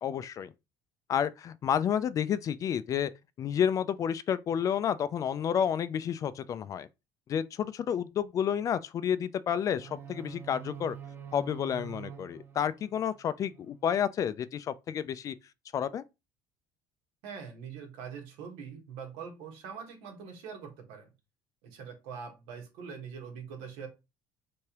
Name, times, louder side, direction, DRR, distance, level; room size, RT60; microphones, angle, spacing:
voice 1, 0.0-0.5 1.1-3.1 3.4-6.9 7.3-11.0 11.3-15.4 15.7-16.0, left 8 dB, 40° left, 0.3 m, -30 dB
sound 1, 9.8-13.8, right 8 dB, 25° right, 0.6 m, -46 dB
voice 2, 17.2-21.1 21.6-23.9, right 6 dB, 80° right, 1.5 m, -43 dB
3.4 x 3.2 x 2.9 m
cardioid pair, 115°, 9 cm